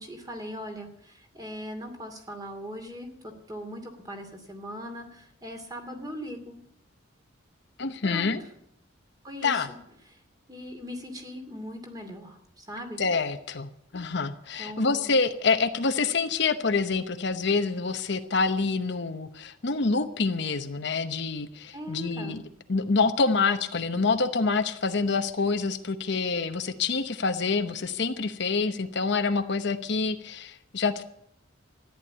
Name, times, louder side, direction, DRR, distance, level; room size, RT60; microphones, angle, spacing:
voice 1, 0.0-6.6 8.0-8.3 9.2-9.8 10.5-13.0 14.6-15.1 21.7-22.4, equal, 20° right, 5 dB, 2.5 m, -39 dB
voice 2, 7.8-8.4 9.4-9.7 13.0-22.4 22.7-31.0, left 4 dB, 60° left, 8 dB, 0.9 m, -27 dB
14.0 x 10.5 x 8.5 m, 0.75 s
head